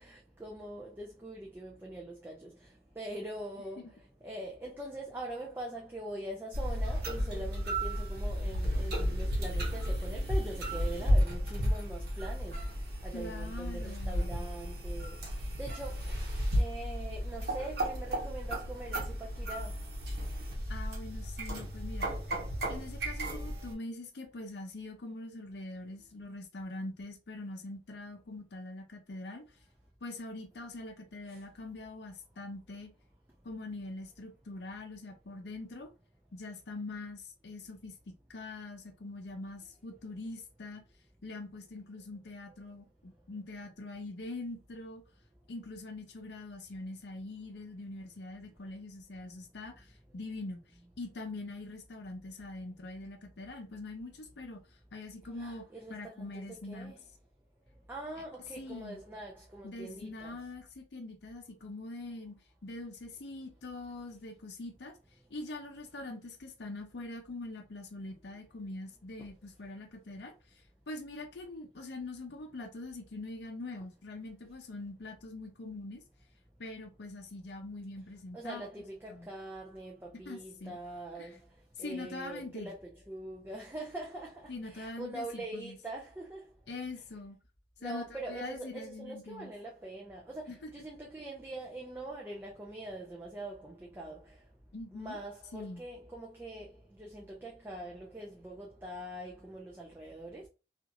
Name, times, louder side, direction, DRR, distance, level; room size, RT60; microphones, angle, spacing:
voice 1, 0.0-19.9 31.3-31.4 55.4-56.9 57.9-60.4 78.3-82.8 83.1-86.5 87.8-94.5 94.9-100.5, right 1 dB, 10° right, 0.4 m, -43 dB
sound 1, 6.5-23.7, equal, 60° right, 1.0 m, -33 dB
voice 2, 13.1-14.5 20.7-22.1 22.7-29.4 30.0-32.9 33.4-35.9 36.3-37.9 38.3-40.8 41.2-45.0 45.5-50.6 51.0-54.6 54.9-56.9 58.2-58.3 58.5-59.0 59.6-62.4 62.6-65.0 65.3-76.0 76.6-78.7 79.1-79.3 80.1-80.8 81.2-81.4 81.8-82.7 84.5-85.8 86.7-87.4 87.8-89.5 90.5-90.9 94.7-95.2 95.5-95.8, left 2 dB, 65° left, 0.6 m, -43 dB
2.9 x 2.5 x 2.4 m
head